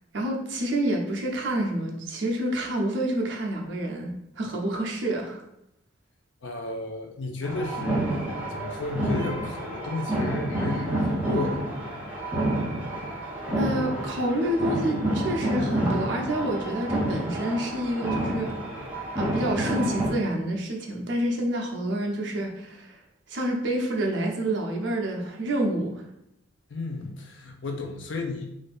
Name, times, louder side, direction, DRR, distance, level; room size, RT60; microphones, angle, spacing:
voice 1, 0.1-5.5 13.5-18.5 19.2-23.0 23.3-26.0, right 1 dB, 60° right, 1 dB, 0.6 m, -28 dB
voice 2, 6.4-11.7 26.7-28.5, left 2 dB, 65° left, 3 dB, 0.5 m, -33 dB
sound 1, 7.4-20.1, right 1 dB, 10° right, 0.6 m, -29 dB
2.7 x 2.5 x 3.3 m, 0.78 s
head